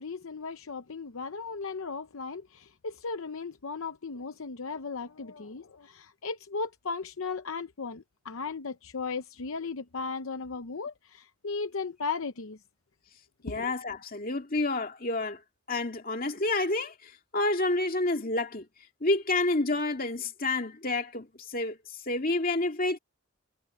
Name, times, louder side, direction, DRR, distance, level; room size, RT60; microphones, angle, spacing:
voice 1, 0.0-12.6 13.5-13.7, left 4 dB, 70° left, 0.7 m, -36 dB
voice 2, 13.4-15.4 15.7-18.7 19.0-21.8 22.1-23.0, left 2 dB, 40° left, 2.2 m, -29 dB
head